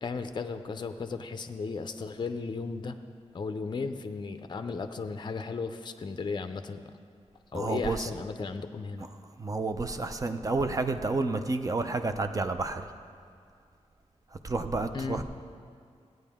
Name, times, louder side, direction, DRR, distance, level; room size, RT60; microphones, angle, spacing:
voice 1, 0.0-3.0 3.3-6.8 7.5-9.1 14.9-15.2, left 4 dB, 40° left, 8 dB, 0.5 m, -35 dB
voice 2, 7.5-8.1 9.4-12.8 14.4-15.2, right 3 dB, 30° right, 7 dB, 0.5 m, -30 dB
15.0 x 9.1 x 3.5 m, 2.3 s
wide cardioid pair, 140°, 12 cm